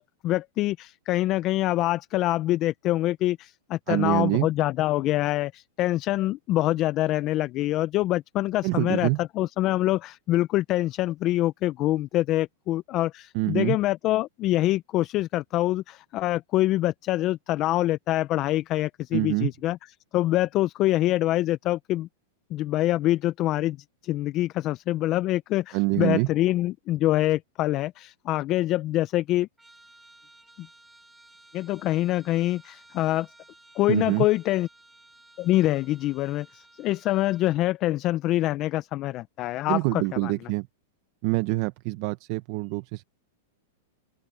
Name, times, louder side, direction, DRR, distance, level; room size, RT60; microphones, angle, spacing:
voice 1, 0.0-19.8 20.1-22.1 22.5-23.8 24.0-29.5 30.6-30.7 31.5-33.3 33.8-34.7 35.4-40.3, left 15 dB, 35° left, 0.4 m, -25 dB
voice 2, 3.9-4.5 8.6-9.2 13.3-13.8 19.1-19.5 25.7-26.3 33.9-34.3 39.7-40.7 41.2-43.0, right 23 dB, 45° right, 0.7 m, -25 dB
Trumpet, 29.6-37.7, right 2 dB, 5° right, 5.5 m, -55 dB
open air
supercardioid pair, 150°, 0 cm